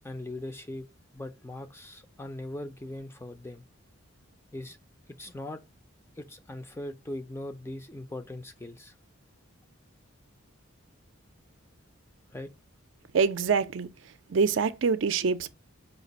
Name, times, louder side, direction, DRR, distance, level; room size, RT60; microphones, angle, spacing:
voice 1, 0.0-0.9 1.1-3.6 4.5-4.8 5.2-5.6 6.2-9.0 12.3-12.5, left 1 dB, 10° left, 0.4 m, -40 dB
voice 2, 13.1-15.5, right 5 dB, 65° right, 0.4 m, -26 dB
5.1 x 2.5 x 4.0 m
head